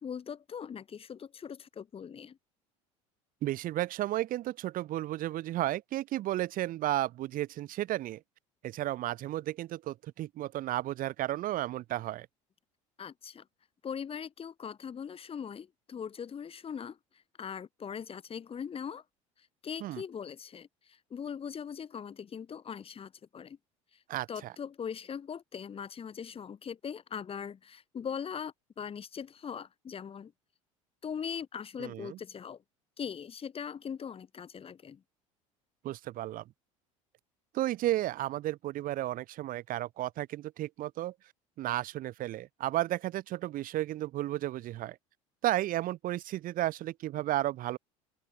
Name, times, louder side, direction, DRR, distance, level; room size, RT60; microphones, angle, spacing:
voice 1, 0.0-2.4 13.0-13.5 13.8-19.0 19.4-23.6 23.9-24.0 24.3-30.3 31.0-32.6 33.0-35.0, left 7 dB, 35° left, 2.3 m, -41 dB
voice 2, 3.4-8.2 8.6-12.3 19.8-20.0 24.1-24.5 31.8-32.2 35.8-36.4 37.5-41.1 41.6-45.0 45.4-47.8, right 14 dB, 55° right, 3.3 m, -33 dB
open air
hypercardioid pair, 75°, 17 cm